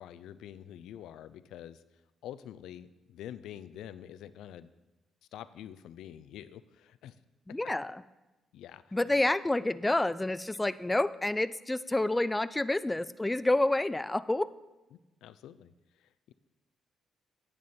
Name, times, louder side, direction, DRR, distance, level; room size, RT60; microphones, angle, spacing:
voice 1, 0.0-1.8 2.2-4.7 5.3-7.1 8.5-9.0 14.9-15.7 16.3-16.4, left 10 dB, 85° left, 15 dB, 0.4 m, -46 dB
voice 2, 7.5-8.0 8.9-14.5, left 2 dB, 10° left, 16 dB, 0.3 m, -28 dB
9.4 x 8.7 x 4.3 m, 1.1 s
cardioid pair, 90°, 0 cm